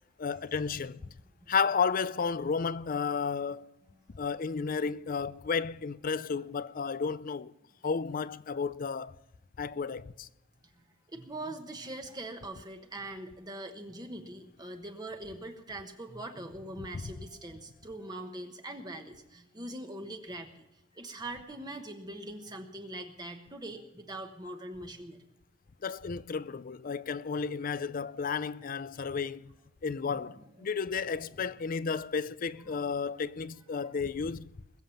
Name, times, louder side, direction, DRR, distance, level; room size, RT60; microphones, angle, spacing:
voice 1, 0.2-1.0 1.5-3.7 4.1-7.5 7.8-9.1 9.6-10.3 16.8-17.1 25.8-29.5 29.8-34.5, left 5 dB, 45° left, 0.4 m, -32 dB
voice 2, 11.1-20.6 20.9-25.2 30.1-30.7 31.0-31.1 32.6-32.7, right 1 dB, 20° right, 1.2 m, -42 dB
21.0 x 7.5 x 7.1 m
head